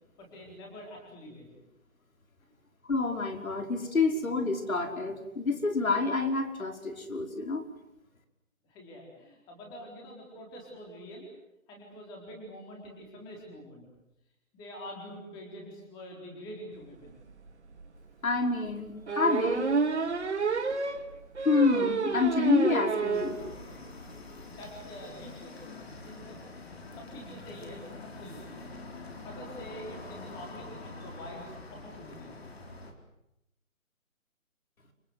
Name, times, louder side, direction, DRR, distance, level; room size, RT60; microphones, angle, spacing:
voice 1, 0.2-1.6 8.6-11.3 11.7-13.9 14.5-17.2 24.4-26.4 27.0-28.6 29.2-32.4, equal, 10° left, -1 dB, 4.3 m, -46 dB
voice 2, 2.9-7.6 18.2-19.7 21.5-23.4, left 3 dB, 80° left, 5 dB, 5.3 m, -28 dB
sound 1, 17.3-17.4 17.8-17.9 19.1-23.4 23.7-23.8 24.1-24.2 24.4-24.6, right 5 dB, 55° right, 2.4 m, -29 dB
sound 2, 23.1-32.9, left 3 dB, 45° left, 4.4 m, -45 dB
30.0 x 25.0 x 8.0 m, 0.87 s
hypercardioid pair, 165°, 41 cm